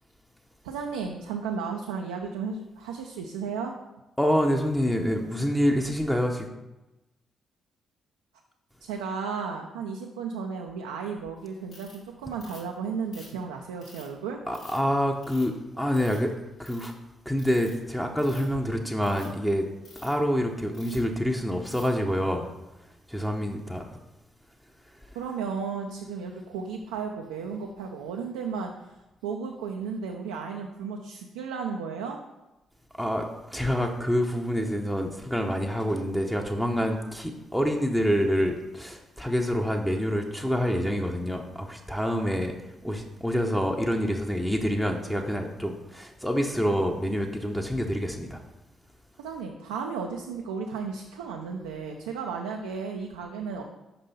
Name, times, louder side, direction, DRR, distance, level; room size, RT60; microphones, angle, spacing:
voice 1, 0.6-3.7 8.8-14.4 25.1-28.7 29.2-32.2 49.2-53.6, right 5 dB, 85° right, 1 dB, 0.4 m, -34 dB
voice 2, 4.2-6.5 14.5-16.3 16.6-16.9 17.3-19.7 20.0-22.5 23.1-23.8 33.0-42.5 42.8-48.4, equal, 5° left, 2 dB, 0.7 m, -27 dB
Ratchet pawl, 11.7-12.0 12.4-12.7 13.1-14.1 14.5-14.8 15.2-15.6 15.9-16.3 16.6-16.9 17.4-17.7 18.1-18.5 19.0-19.3 19.9-20.1 20.7-21.1 21.7-21.9, left 2 dB, 65° left, 2.4 m, -50 dB
5.4 x 5.2 x 4.1 m, 0.99 s
hypercardioid pair, 45°, 0 cm